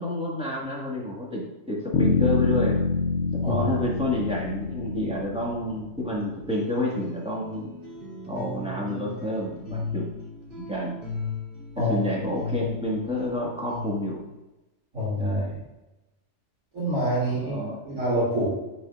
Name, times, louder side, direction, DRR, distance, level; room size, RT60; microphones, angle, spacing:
voice 1, 0.0-2.8 3.3-7.7 8.2-10.1 10.6-11.0 11.9-14.2 15.2-15.6 17.4-17.8, left 1 dB, 5° right, -5 dB, 1.4 m, -29 dB
sound 1, 1.9-6.0, left 4 dB, 70° left, 0.9 m, -26 dB
sound 2, 6.1-14.3, left 4 dB, 45° right, 2.5 m, -37 dB
voice 2, 14.9-15.4 16.7-17.5 17.8-18.5, equal, 85° right, -11 dB, 2.8 m, -26 dB
9.9 x 4.0 x 2.4 m, 1.0 s
omnidirectional pair, 1.3 m